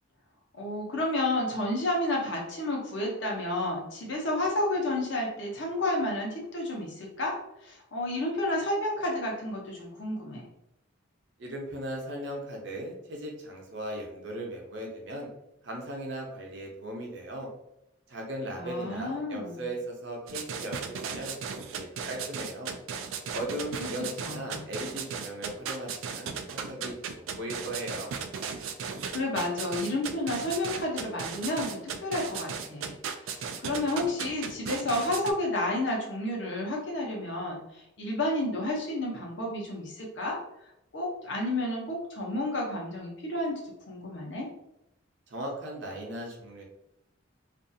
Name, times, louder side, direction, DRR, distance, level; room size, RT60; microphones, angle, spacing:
voice 1, 0.6-7.3 7.6-10.5 18.5-19.7 23.8-23.9 24.2-24.7 29.1-33.0 33.2-40.4 40.9-43.6 43.9-44.5, left 1 dB, 65° left, -1 dB, 0.8 m, -31 dB
voice 2, 11.4-15.3 15.6-17.5 18.1-22.7 23.3-28.1 45.3-46.6, right 1 dB, 60° right, 0 dB, 0.7 m, -38 dB
sound 1, 20.3-35.3, right 6 dB, 80° right, 0.3 m, -36 dB
2.6 x 2.4 x 2.6 m, 0.81 s
head